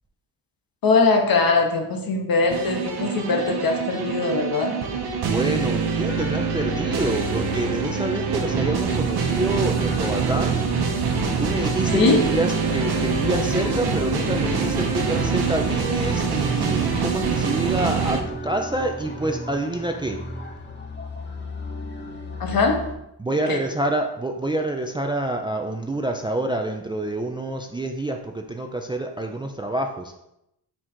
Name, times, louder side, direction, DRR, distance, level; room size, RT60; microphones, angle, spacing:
voice 1, 0.8-4.7 11.9-12.2 22.4-22.8 23.5-23.6, left 4 dB, 55° left, 3 dB, 0.9 m, -21 dB
sound 1, 2.5-18.2, right 5 dB, 65° right, 0.9 m, -24 dB
voice 2, 5.2-10.6 11.4-20.2 23.2-30.1, right 2 dB, 10° right, 3 dB, 0.4 m, -27 dB
sound 2, 6.1-22.9, left 2 dB, 25° left, 0.9 m, -35 dB
4.5 x 2.4 x 4.2 m, 0.84 s
supercardioid pair, 50°, 42 cm